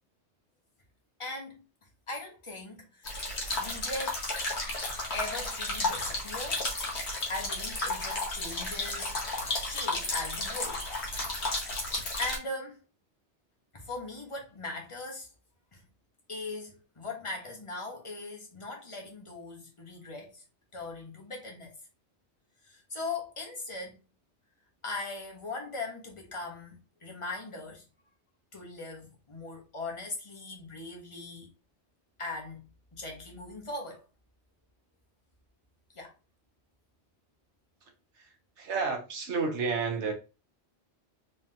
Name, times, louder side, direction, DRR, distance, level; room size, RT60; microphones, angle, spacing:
voice 1, 1.2-1.6 2.1-3.3 3.6-4.2 5.1-6.7 7.3-9.2 9.6-10.8 12.2-12.8 13.7-15.3 15.7-15.8 16.3-20.4 20.7-21.7 22.6-24.0 24.8-27.8 28.5-31.5 32.2-34.0 35.9-36.1, left 2 dB, 30° left, 1.1 m, -39 dB
sound 1, 3.1-12.4, left 2 dB, 70° left, 1.4 m, -33 dB
voice 2, 38.2-40.1, right 4 dB, 85° right, 1.3 m, -31 dB
3.6 x 3.4 x 2.8 m
omnidirectional pair, 1.2 m